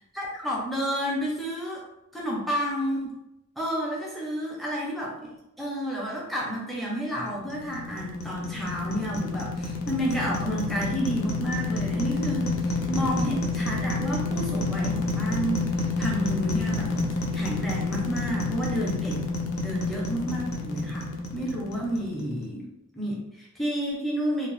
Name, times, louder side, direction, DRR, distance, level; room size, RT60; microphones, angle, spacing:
voice 1, 0.1-1.8 2.1-3.2 3.6-15.6 16.0-16.9 17.3-21.1 21.3-22.7 22.9-24.5, equal, ahead, -4 dB, 0.5 m, -30 dB
sound 1, 7.3-22.4, left 2 dB, 70° left, 0.5 m, -29 dB
2.8 x 2.0 x 3.1 m, 0.83 s
head